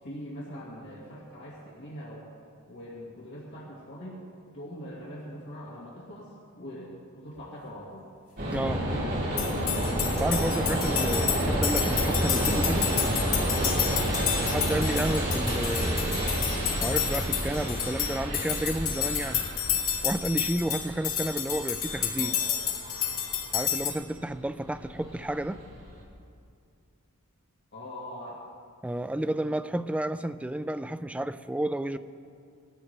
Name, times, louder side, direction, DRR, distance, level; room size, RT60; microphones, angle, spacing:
voice 1, 0.0-2.2 2.7-4.2 4.5-8.1 13.2-13.5 16.1-16.4 22.2-22.4 27.7-28.4, equal, 55° left, -5 dB, 2.0 m, -42 dB
sound 1, 8.4-26.0, right 1 dB, 50° right, 3.4 m, -30 dB
voice 2, 8.5-8.8 10.1-12.9 14.4-16.3 16.8-19.4 20.0-22.4 23.5-25.6 28.8-32.0, right 1 dB, 5° right, 11 dB, 0.3 m, -31 dB
sound 2, 9.4-23.9, left 9 dB, 85° left, 2.2 m, -30 dB
19.5 x 14.5 x 3.3 m, 2.4 s
head